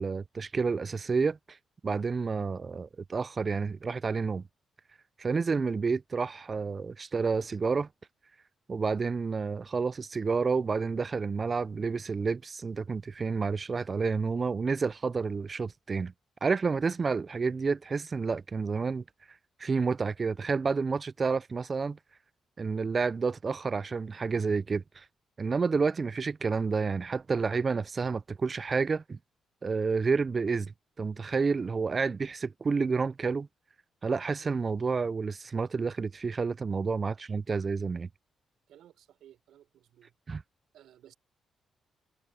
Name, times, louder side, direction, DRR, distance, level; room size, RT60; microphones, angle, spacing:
voice 1, 0.0-1.6 1.8-4.4 5.2-7.9 8.7-16.1 16.4-19.0 19.6-22.0 22.6-25.1 25.4-29.2 29.6-33.5 34.0-38.1 40.3-40.4, right 4 dB, 40° right, 0.3 m, -30 dB
voice 2, 38.7-40.1 40.7-41.1, right 11 dB, 85° right, 4.8 m, -57 dB
cardioid pair, 80°, 0 cm